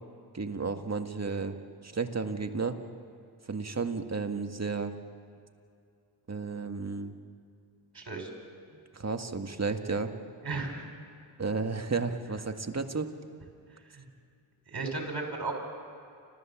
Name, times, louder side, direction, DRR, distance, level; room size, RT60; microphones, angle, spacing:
voice 1, 0.3-1.6 1.8-2.8 3.5-4.9 6.3-7.1 8.9-10.1 11.4-13.1, right 4 dB, 35° right, 6 dB, 1.8 m, -32 dB
voice 2, 7.9-8.3 10.4-10.9 13.9-14.1 14.7-15.5, right 3 dB, 50° right, 1 dB, 6.0 m, -35 dB
29.5 x 14.0 x 7.4 m, 2.4 s
cardioid pair, 45°, 48 cm